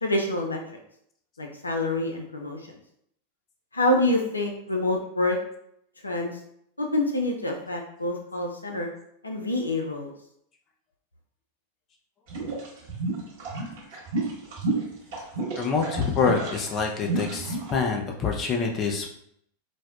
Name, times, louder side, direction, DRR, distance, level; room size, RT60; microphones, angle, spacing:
voice 1, 0.0-0.6 1.4-2.7 3.7-5.4 6.0-6.4 6.8-8.9 9.2-10.1, left 1 dB, 80° left, 1 dB, 0.5 m, -26 dB
sound 1, 12.3-17.7, right 3 dB, 55° right, 0.9 m, -30 dB
voice 2, 15.5-19.1, left 5 dB, 30° left, 1 dB, 0.6 m, -26 dB
4.1 x 2.1 x 2.4 m, 0.70 s
figure-of-eight pair, 90°, 0 cm